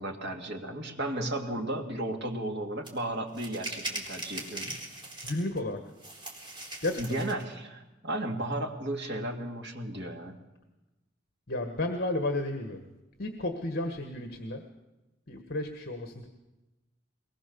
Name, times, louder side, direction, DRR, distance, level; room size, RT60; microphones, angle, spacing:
voice 1, 0.0-4.8 7.0-10.4, right 1 dB, 60° right, 3 dB, 2.4 m, -34 dB
sound 1, 2.9-3.0 3.3-5.6 6.0-7.4, right 1 dB, 25° right, 4.0 m, -40 dB
voice 2, 5.2-5.8 6.8-7.2 11.5-12.8 13.2-14.6 15.3-16.3, left 2 dB, 55° left, 5 dB, 1.6 m, -32 dB
22.0 x 20.0 x 7.0 m, 1.0 s
head